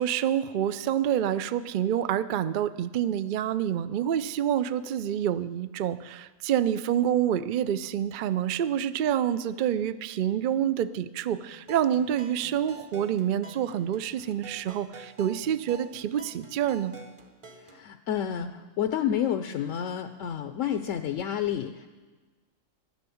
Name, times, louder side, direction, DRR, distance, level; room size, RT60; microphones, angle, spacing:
voice 1, 0.0-16.9, right 10 dB, 70° right, 13 dB, 0.4 m, -27 dB
sound 1, 11.5-17.8, right 3 dB, 25° right, 0.9 m, -48 dB
voice 2, 17.6-21.9, left 9 dB, 70° left, 9 dB, 0.9 m, -30 dB
12.0 x 9.9 x 7.0 m, 1.3 s
omnidirectional pair, 1.4 m